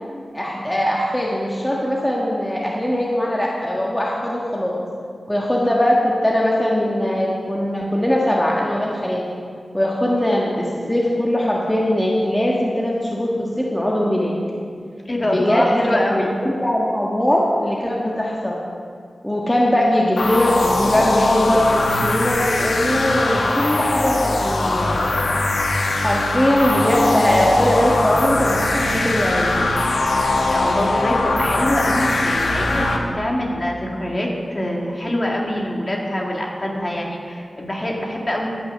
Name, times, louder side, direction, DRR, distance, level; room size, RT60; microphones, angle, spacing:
voice 1, 0.3-4.9 5.3-9.2 9.7-14.3 15.2-18.6 19.2-24.9 25.8-29.5, equal, 10° left, -4 dB, 1.5 m, -20 dB
voice 2, 15.1-16.4 30.5-38.5, left 1 dB, 35° left, -1 dB, 2.3 m, -24 dB
sound 1, 20.2-33.0, left 2 dB, 85° left, 1.2 m, -21 dB
15.5 x 6.1 x 6.5 m, 2.2 s
wide cardioid pair, 60°, 0 cm